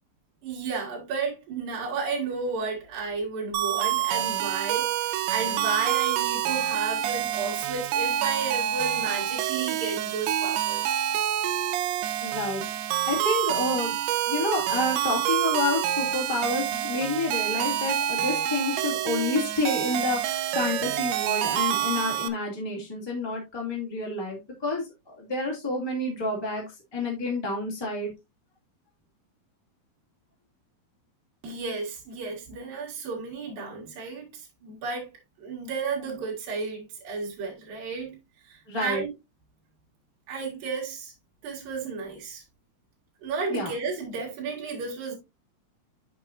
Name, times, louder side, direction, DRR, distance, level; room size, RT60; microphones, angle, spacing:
voice 1, 0.4-10.9 31.4-35.1 35.4-39.1 40.3-41.1 41.4-42.4 43.2-45.2, right 4 dB, 65° right, 4.0 m, -33 dB
sound 1, 3.5-22.3, right 11 dB, 85° right, 2.6 m, -27 dB
voice 2, 12.2-13.9 14.3-26.6 26.9-28.1 38.7-39.0 43.5-43.7, left 2 dB, 10° left, 1.8 m, -29 dB
8.7 x 6.1 x 2.6 m
omnidirectional pair, 4.5 m